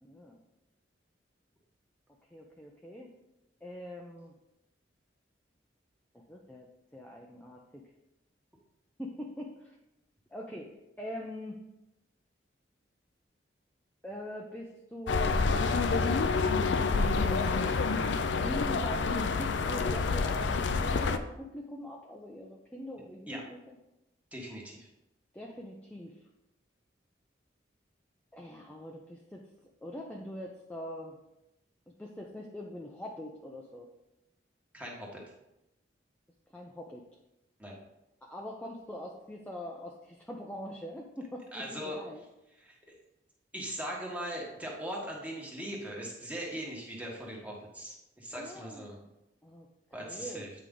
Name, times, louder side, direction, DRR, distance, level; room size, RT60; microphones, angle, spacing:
voice 1, 0.0-0.4 2.3-3.1 3.6-4.3 6.1-6.7 6.9-7.9 9.0-9.8 10.3-11.6 14.0-15.6 16.8-23.8 25.3-26.2 28.3-29.5 29.8-31.2 31.9-33.9 36.5-37.1 38.2-42.2 48.3-49.1 49.4-49.7 50.0-50.5, left 1 dB, 10° left, -1 dB, 0.6 m, -43 dB
sound 1, 15.1-21.2, left 4 dB, 75° left, 0.5 m, -28 dB
voice 2, 24.3-24.9 34.7-35.2 37.6-37.8 41.5-42.0 42.6-42.9 43.5-49.0 49.9-50.5, equal, 10° right, -3 dB, 1.4 m, -40 dB
8.6 x 4.8 x 3.8 m, 0.90 s
head